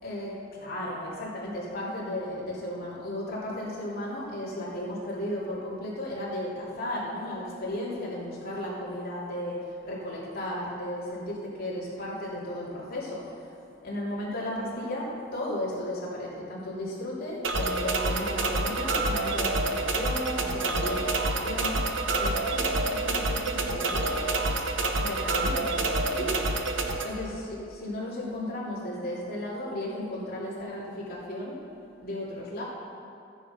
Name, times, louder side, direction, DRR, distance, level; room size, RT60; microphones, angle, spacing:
voice 1, 0.0-9.6 9.8-13.5 13.8-21.9 22.2-24.2 25.0-26.4 27.0-31.6 32.0-32.6, left 1 dB, 50° left, -7 dB, 3.4 m, -34 dB
sound 1, 17.4-27.0, right 2 dB, 65° right, 1.0 m, -28 dB
14.0 x 9.9 x 5.3 m, 2.6 s
head